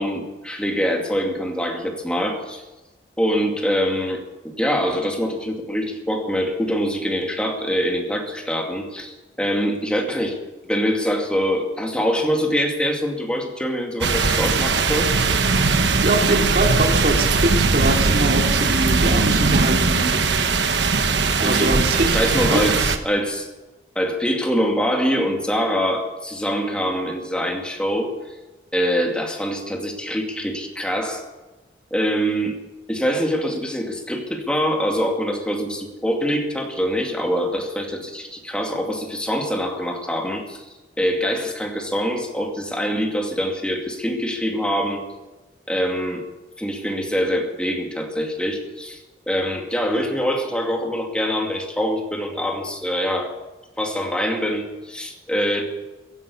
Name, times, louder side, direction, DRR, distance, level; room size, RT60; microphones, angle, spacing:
voice 1, 0.0-2.6 3.2-10.4 10.6-15.1 21.4-21.7 22.1-23.5 24.0-28.1 28.7-31.2 31.9-32.5 32.9-45.0 45.7-46.2 46.6-53.4 53.8-55.6, equal, 5° left, 2 dB, 2.3 m, -24 dB
sound 1, 14.0-23.0, right 4 dB, 75° right, 1.1 m, -19 dB
voice 2, 16.0-20.3 21.4-22.2 22.5-22.6, right 1 dB, 50° right, 2 dB, 2.5 m, -23 dB
15.5 x 11.0 x 8.4 m, 1.1 s
head